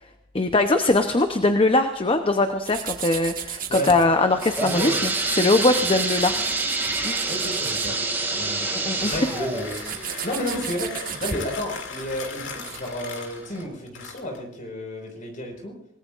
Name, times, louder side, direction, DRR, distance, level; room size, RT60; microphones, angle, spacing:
voice 1, 0.3-6.4 7.0-7.2 8.7-9.3, left 2 dB, 30° left, 7 dB, 0.8 m, -21 dB
sound 1, 2.7-4.1 4.4-8.4 8.7-12.9, right 8 dB, 50° right, 1.7 m, -35 dB
sound 2, 4.2-11.8 12.3-12.4 13.1-13.2 13.6-13.7, right 2 dB, 10° right, 2.4 m, -28 dB
voice 2, 4.6-5.1 7.3-8.0 8.3-8.7 9.0-10.0 10.2-15.8, equal, 45° left, 2 dB, 5.1 m, -31 dB
Mechanisms, 9.0-14.5, left 4 dB, 75° left, 2.6 m, -38 dB
28.5 x 18.5 x 2.5 m, 0.76 s
head